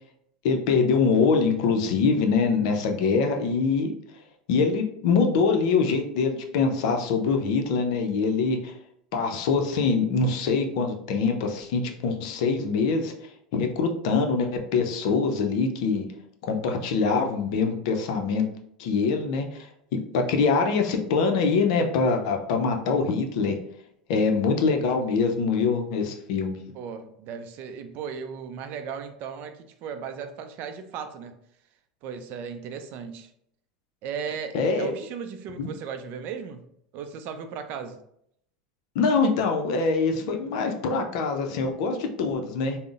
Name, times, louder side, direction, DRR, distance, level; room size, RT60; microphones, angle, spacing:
voice 1, 0.4-3.9 4.5-8.7 9.1-16.1 16.4-18.5 18.8-19.7 19.9-23.6 24.1-26.6 34.5-34.9 35.6-35.7 38.9-42.8, left 4 dB, 70° left, 4 dB, 0.5 m, -24 dB
voice 2, 26.7-29.5 29.8-31.4 32.0-33.3 34.0-36.7 36.9-38.0, right 6 dB, 55° right, 8 dB, 0.4 m, -36 dB
3.7 x 2.0 x 2.4 m, 0.70 s
hypercardioid pair, 95°, 4 cm